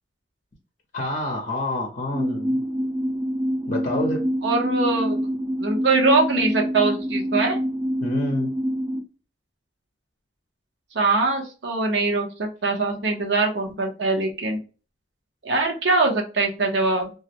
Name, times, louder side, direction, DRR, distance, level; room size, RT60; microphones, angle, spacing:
voice 1, 0.9-2.6 3.7-4.2 8.0-8.5, left 1 dB, 40° left, 0.6 m, -27 dB
sound 1, 2.1-9.0, equal, 10° right, 0.6 m, -26 dB
voice 2, 4.4-5.2 5.6-7.6 10.9-14.6 15.4-17.1, right 3 dB, 70° right, 0.7 m, -22 dB
2.3 x 2.0 x 2.8 m
head